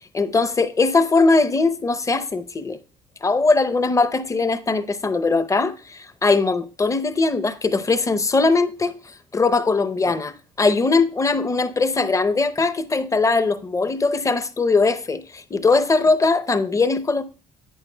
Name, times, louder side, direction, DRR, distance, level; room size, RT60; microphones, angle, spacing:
voice 1, 0.1-2.8 3.2-10.3 10.6-17.2, left 3 dB, 20° left, 0.6 m, -20 dB
11.0 x 8.5 x 2.2 m
cardioid pair, 110°, 17 cm